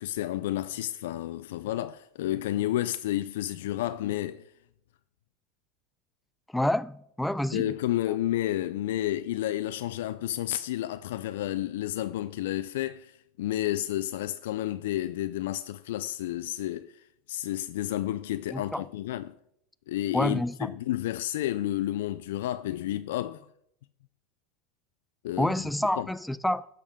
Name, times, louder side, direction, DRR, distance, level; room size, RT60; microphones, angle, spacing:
voice 1, 0.0-4.4 7.5-19.3 19.9-23.5 25.2-25.5 26.0-26.1, left 13 dB, 80° left, 0.3 m, -31 dB
voice 2, 6.5-7.7 18.5-18.8 20.1-20.7 25.4-26.7, left 1 dB, 5° left, 0.3 m, -28 dB
10.5 x 6.6 x 3.6 m
supercardioid pair, 125°, 0 cm